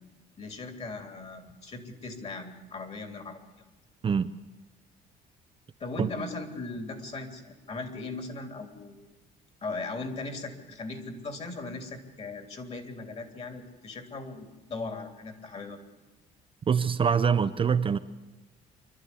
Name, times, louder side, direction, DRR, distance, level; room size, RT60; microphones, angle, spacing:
voice 1, 0.4-3.4 5.8-9.0 9.6-15.8, left 3 dB, 40° left, 3.3 m, -38 dB
voice 2, 16.7-18.0, right 6 dB, 30° right, 0.7 m, -24 dB
26.0 x 12.5 x 9.8 m
cardioid pair, 110°, 17 cm